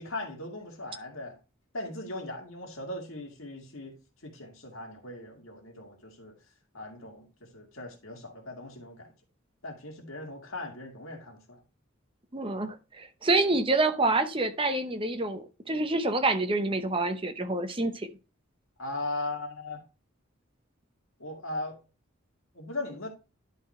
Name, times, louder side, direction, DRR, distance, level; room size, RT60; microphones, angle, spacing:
voice 1, 0.0-1.4 1.7-4.0 4.2-6.4 6.7-7.3 7.5-9.1 9.6-11.6 18.8-19.8 21.2-21.8 22.5-23.1, left 2 dB, 75° left, 2.0 m, -38 dB
voice 2, 12.3-17.9, right 2 dB, 25° right, 0.8 m, -27 dB
11.0 x 4.0 x 4.3 m
head